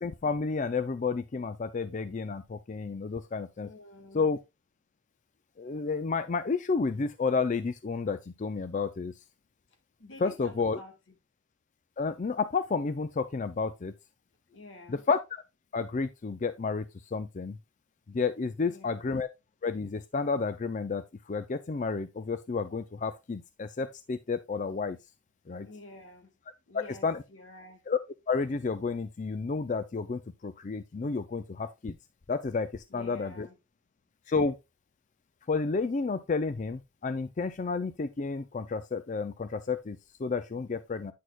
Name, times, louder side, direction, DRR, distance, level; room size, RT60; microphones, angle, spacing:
voice 1, 0.0-3.7 4.1-4.4 5.6-9.1 10.2-10.8 12.0-13.9 14.9-15.4 15.7-17.6 18.1-19.3 19.6-25.0 25.5-25.7 26.7-27.2 27.9-28.0 28.3-32.0 32.3-33.5 34.3-34.6 35.5-41.1, left 4 dB, 40° left, 0.4 m, -31 dB
voice 2, 3.6-4.3 10.0-10.9 14.5-15.0 18.6-19.1 25.6-26.3 26.7-27.8 32.9-33.6, left 2 dB, 85° left, 1.9 m, -49 dB
9.3 x 6.3 x 2.4 m
head